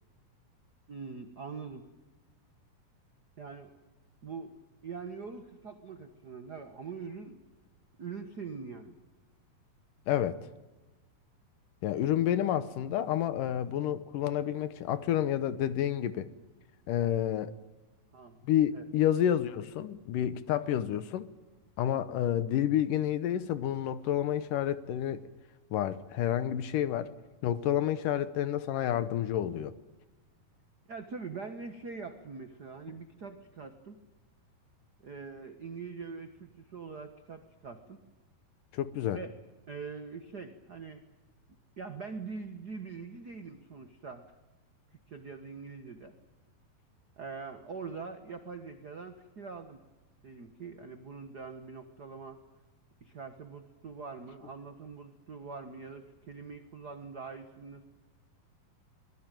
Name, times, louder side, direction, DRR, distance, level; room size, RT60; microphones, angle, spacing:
voice 1, 0.9-1.9 3.4-3.7 4.2-4.5 4.8-7.4 8.0-9.0 18.1-18.5 18.7-18.8 30.9-34.0 35.0-38.0 39.1-39.3 39.7-41.0 41.8-44.2 45.1-46.1 47.2-49.8 50.2-52.4 53.0-57.8, right 5 dB, 85° right, 0.8 m, -43 dB
voice 2, 10.1-10.4 11.8-16.3 16.9-17.5 18.4-21.3 21.8-25.3 25.7-27.1 27.4-29.8 38.7-39.2, left 11 dB, 70° left, 2.4 m, -29 dB
24.0 x 20.5 x 9.2 m
omnidirectional pair, 4.2 m